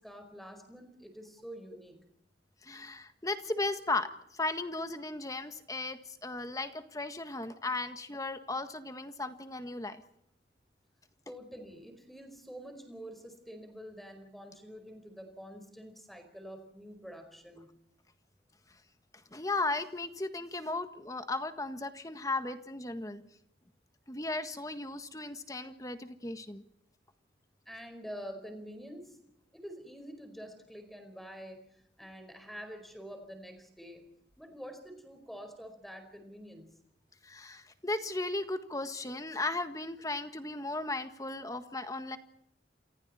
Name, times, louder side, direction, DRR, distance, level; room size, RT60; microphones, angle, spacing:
voice 1, 0.0-2.0 11.3-17.7 27.6-29.2 29.5-34.1 34.4-36.7, equal, ahead, 6 dB, 4.8 m, -47 dB
voice 2, 2.6-10.0 19.3-23.2 24.1-26.6 37.2-42.2, left 2 dB, 20° left, 8 dB, 1.6 m, -36 dB
28.5 x 27.0 x 4.4 m, 0.76 s
head